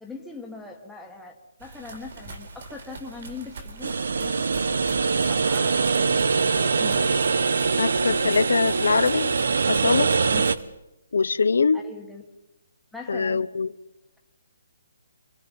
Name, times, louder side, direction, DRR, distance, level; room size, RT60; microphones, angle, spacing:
voice 1, 0.0-1.3 1.6-4.5 5.2-7.2 10.3-10.4 11.7-12.2 12.9-13.5, left 4 dB, ahead, -1 dB, 1.4 m, -41 dB
sound 1, 1.6-10.6, right 3 dB, 45° right, 4.3 m, -42 dB
sound 2, 3.8-10.6, right 4 dB, 65° right, 1.0 m, -23 dB
voice 2, 7.8-9.3 9.7-10.1 11.1-11.8 13.1-13.7, left 4 dB, 80° left, 13 dB, 0.9 m, -22 dB
28.5 x 23.0 x 5.4 m, 0.92 s
hypercardioid pair, 175°, 0 cm